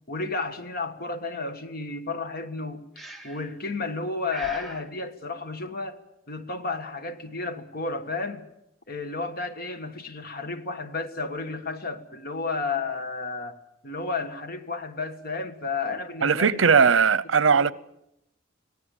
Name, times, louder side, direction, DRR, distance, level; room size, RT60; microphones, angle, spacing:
voice 1, 0.1-2.9 3.2-6.0 6.3-8.4 8.9-13.6 13.8-16.9 17.5-17.7, left 3 dB, 50° left, 1.6 m, -32 dB
Breathing, 3.0-3.6 4.3-4.9, right 1 dB, ahead, 2.1 m, -40 dB
voice 2, 16.2-17.7, right 6 dB, 85° right, 0.7 m, -19 dB
25.0 x 17.5 x 7.2 m
head